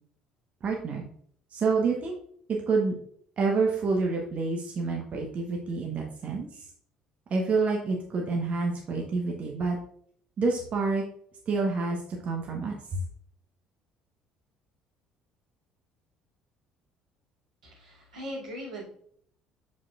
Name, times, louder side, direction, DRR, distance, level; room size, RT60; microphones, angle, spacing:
voice 1, 0.6-1.0 1.5-2.2 2.5-2.9 3.4-6.7 7.3-9.8 10.4-11.0 11.5-13.0, right 4 dB, 40° right, 0 dB, 1.1 m, -28 dB
voice 2, 17.6-18.9, equal, 80° right, -7 dB, 2.5 m, -39 dB
6.8 x 6.1 x 2.4 m, 0.63 s
figure-of-eight pair, 55°, 3 cm